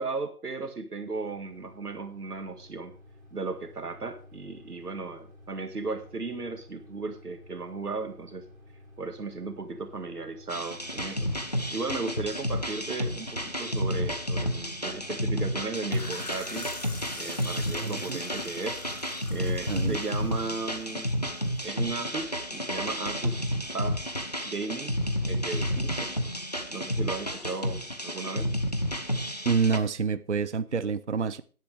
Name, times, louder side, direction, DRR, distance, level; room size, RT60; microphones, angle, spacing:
voice 1, 0.0-2.9 3.3-8.5 9.0-11.3 11.7-16.7 17.2-18.8 19.3-21.1 21.6-24.0 24.4-25.0 25.3-26.1 26.7-28.5, right 3 dB, 80° right, 1.9 m, -36 dB
sound 1, 1.0-20.7, left 1 dB, ahead, 3.7 m, -52 dB
sound 2, 10.5-29.8, equal, 25° left, 0.7 m, -31 dB
sound 3, 15.8-21.3, left 3 dB, 75° left, 2.7 m, -45 dB
voice 2, 17.8-18.2 19.7-20.0 29.5-31.4, right 5 dB, 50° right, 0.6 m, -27 dB
14.0 x 10.5 x 3.4 m
figure-of-eight pair, 170°, 45 cm